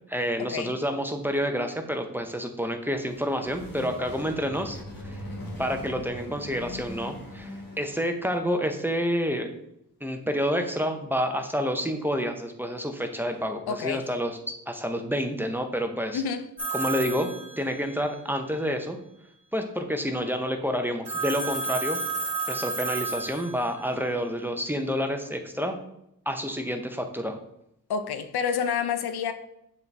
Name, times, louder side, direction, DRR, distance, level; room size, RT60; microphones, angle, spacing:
voice 1, 0.1-4.8 5.0-5.2 5.6-9.5 10.0-16.2 16.7-19.0 19.5-22.0 22.5-25.8 26.3-27.4, equal, 5° right, 5 dB, 0.7 m, -29 dB
sound 1, 2.9-8.2, left 1 dB, 60° left, 1.6 m, -40 dB
voice 2, 13.7-14.1 16.1-16.5 27.9-29.3, left 6 dB, 80° left, 10 dB, 0.6 m, -28 dB
Telephone, 16.6-18.1 21.0-23.9, right 3 dB, 40° right, 1.9 m, -32 dB
6.9 x 4.2 x 3.3 m, 0.78 s
cardioid pair, 80°, 38 cm